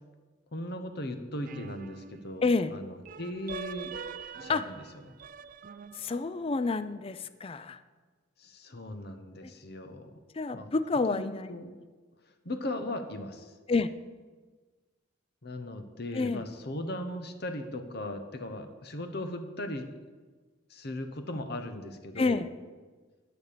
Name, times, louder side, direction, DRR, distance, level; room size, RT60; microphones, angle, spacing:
voice 1, 0.5-3.9 4.4-5.1 8.4-10.2 10.5-10.7 11.1-11.7 12.3-13.5 15.4-19.9 20.7-22.4, left 1 dB, 55° left, 8 dB, 1.0 m, -38 dB
sound 1, 1.4-2.5 3.0-6.4, right 6 dB, 45° right, 0.4 m, -43 dB
voice 2, 2.4-2.7 4.5-4.6 5.9-7.8 9.4-9.5 10.3-11.5 13.7-13.9 16.1-16.4 22.2-22.5, left 3 dB, 30° left, 13 dB, 0.4 m, -28 dB
11.5 x 6.8 x 6.7 m, 1.4 s
head